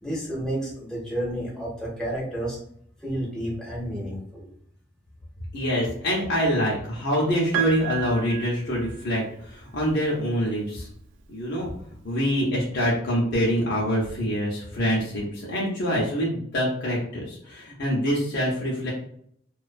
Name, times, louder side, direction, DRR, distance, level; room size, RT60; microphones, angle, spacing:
voice 1, 0.0-2.6 3.0-4.5, right 1 dB, 5° left, -5 dB, 0.6 m, -31 dB
voice 2, 5.5-10.9 11.3-11.7 12.0-18.9, equal, 55° left, -4 dB, 0.6 m, -25 dB
Piano, 7.5-9.5 10.8-10.9, right 11 dB, 70° right, 0.3 m, -33 dB
2.4 x 2.2 x 2.4 m, 0.66 s
head